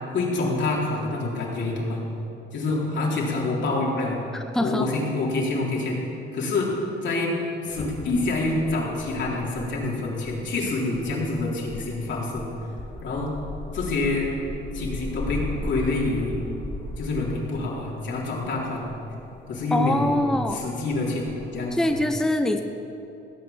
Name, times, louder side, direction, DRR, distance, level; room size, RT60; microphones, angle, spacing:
voice 1, 0.1-2.0 2.5-4.2 4.6-6.0 6.3-6.7 7.0-7.3 7.6-12.5 13.0-13.3 13.7-14.3 14.7-16.4 17.0-18.9 19.5-20.2 20.5-21.2 21.5-21.9, left 2 dB, 65° left, -4 dB, 3.9 m, -27 dB
voice 2, 4.3-4.9 19.7-20.6 21.7-22.6, left 1 dB, ahead, 6 dB, 0.8 m, -24 dB
sound 1, 7.6-22.1, left 2 dB, 25° left, 1.6 m, -38 dB
18.0 x 8.5 x 7.3 m, 2.9 s
cardioid pair, 90°, 20 cm